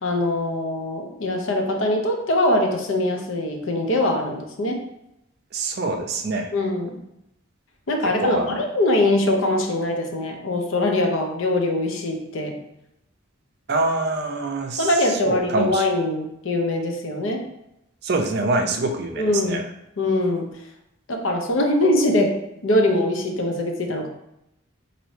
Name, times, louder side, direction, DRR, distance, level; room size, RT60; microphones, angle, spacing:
voice 1, 0.0-4.8 6.5-7.0 7.9-12.6 14.8-17.4 19.2-19.6 20.0-20.5 21.1-22.3 22.6-24.1, left 1 dB, 70° left, 3 dB, 0.6 m, -22 dB
voice 2, 5.5-6.5 8.2-8.6 13.7-15.0 15.2-15.9 18.0-19.6, right 3 dB, 50° right, 4 dB, 0.4 m, -25 dB
4.1 x 2.6 x 3.1 m, 0.83 s
head